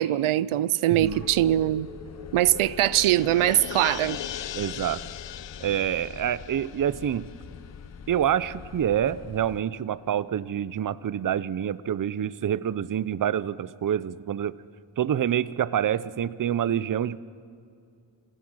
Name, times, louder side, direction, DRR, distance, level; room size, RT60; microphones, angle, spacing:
voice 1, 0.0-1.9 2.3-4.2, right 13 dB, 85° right, 0.6 m, -22 dB
voice 2, 0.9-1.2 4.6-5.0 5.6-7.3 8.1-14.6 15.0-17.2, right 10 dB, 40° right, 0.6 m, -27 dB
sound 1, 1.0-9.6, left 6 dB, 35° left, 0.7 m, -45 dB
Chink clink, 1.1-6.5, left 3 dB, 5° right, 3.2 m, -52 dB
sound 2, 1.3-8.2 8.6-8.7, left 11 dB, 65° left, 0.8 m, -40 dB
27.0 x 15.5 x 6.3 m
cardioid pair, 90°, 49 cm